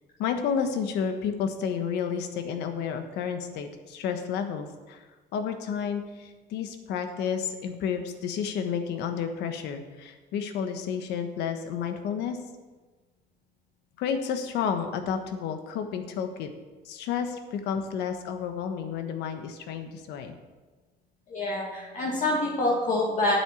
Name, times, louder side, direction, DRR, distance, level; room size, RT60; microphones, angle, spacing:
voice 1, 0.2-5.0 5.3-12.4 14.0-16.5 16.8-20.3, left 7 dB, 85° left, 7 dB, 1.3 m, -31 dB
voice 2, 21.3-23.3, left 2 dB, 50° left, -4 dB, 2.0 m, -26 dB
8.9 x 7.9 x 7.2 m, 1.3 s
cardioid pair, 110°, 17 cm